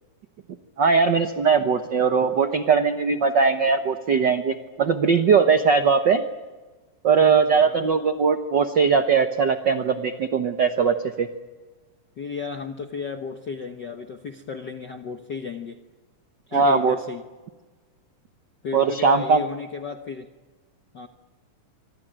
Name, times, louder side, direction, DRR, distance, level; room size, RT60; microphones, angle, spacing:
voice 1, 0.8-6.2 7.0-11.3 16.5-17.0 18.7-19.4, right 5 dB, 75° right, 8 dB, 1.0 m, -20 dB
voice 2, 7.5-7.9 12.2-15.8 16.5-17.2 18.6-20.3 20.9-21.1, left 5 dB, 60° left, 6 dB, 1.1 m, -34 dB
25.5 x 25.5 x 9.0 m, 1.3 s
omnidirectional pair, 3.7 m